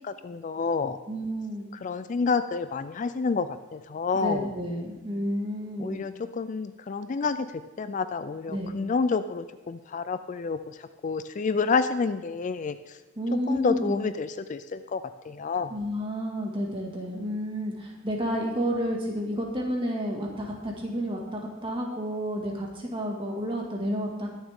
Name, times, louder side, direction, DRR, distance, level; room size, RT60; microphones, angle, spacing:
voice 1, 0.0-1.0 1.8-4.5 5.8-7.5 7.8-10.8 11.0-13.0 13.5-15.7, left 4 dB, 40° left, 12 dB, 0.4 m, -29 dB
voice 2, 1.1-1.6 4.1-6.0 8.5-8.7 13.2-14.0 15.7-24.3, equal, 25° right, -1 dB, 2.0 m, -30 dB
21.0 x 7.2 x 3.6 m, 1.1 s
head